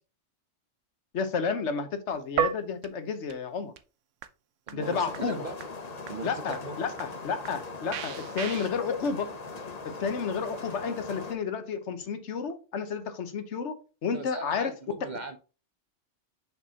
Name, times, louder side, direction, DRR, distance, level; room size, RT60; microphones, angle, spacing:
voice 1, 1.1-3.7 4.7-5.5 6.2-9.3 9.8-13.8 14.0-14.7, left 5 dB, 75° left, 1.2 m, -31 dB
sound 1, 2.1-2.5 2.8-2.9 3.3-3.4 3.8-3.9 4.2-4.3 4.7-4.8 5.1-5.2 5.6-5.7 6.1-6.2 6.5-6.6 7.0-7.1 7.5-7.6 7.9-8.7, right 8 dB, 90° right, 1.0 m, -30 dB
voice 2, 4.7-5.6 6.1-6.8 14.1-15.4, right 3 dB, 50° right, 0.6 m, -39 dB
sound 2, 4.8-11.3, left 3 dB, 35° left, 0.9 m, -40 dB
6.2 x 5.7 x 2.8 m
omnidirectional pair, 1.2 m